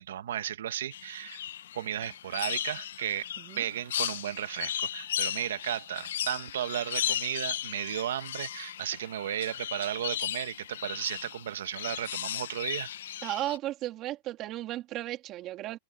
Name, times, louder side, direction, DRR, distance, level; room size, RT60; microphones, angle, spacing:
voice 1, 0.0-1.4 1.7-3.3 3.6-12.9, right 11 dB, 80° right, 1.6 m, -34 dB
sound 1, 0.9-13.6, left 11 dB, 80° left, 0.7 m, -36 dB
voice 2, 13.2-15.8, right 14 dB, 30° right, 2.4 m, -35 dB
supercardioid pair, 155°, 0 cm